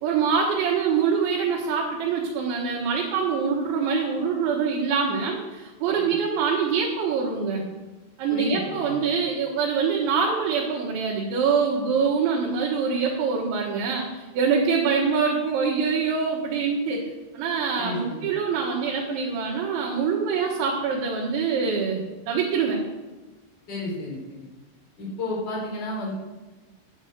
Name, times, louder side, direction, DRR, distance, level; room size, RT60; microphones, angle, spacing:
voice 1, 0.0-7.7 8.2-17.0 17.3-22.8, right 5 dB, 75° right, -3 dB, 3.6 m, -24 dB
voice 2, 8.3-8.9 17.7-18.3 23.7-24.4 25.0-26.1, left 2 dB, 25° left, -4 dB, 3.5 m, -31 dB
9.3 x 7.3 x 8.1 m, 1.2 s
omnidirectional pair, 5.6 m